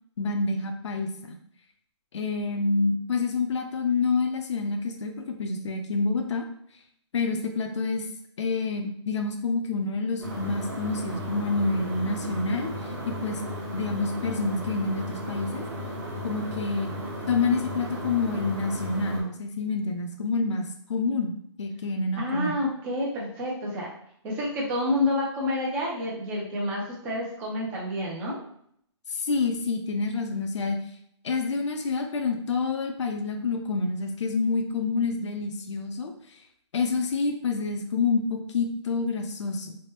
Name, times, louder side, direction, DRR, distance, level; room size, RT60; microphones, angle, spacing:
voice 1, 0.2-1.4 2.1-6.4 7.1-8.1 8.4-12.7 13.1-13.4 13.7-15.6 16.2-16.9 17.3-22.6 29.1-30.8 31.2-36.1 36.7-39.8, left 4 dB, 80° left, 4 dB, 0.5 m, -28 dB
sound 1, 10.2-19.2, equal, 35° right, 1.1 m, -35 dB
voice 2, 22.2-23.9 24.2-28.4, left 1 dB, 10° right, -3 dB, 0.4 m, -29 dB
3.2 x 2.1 x 2.9 m, 0.69 s
hypercardioid pair, 165°, 15 cm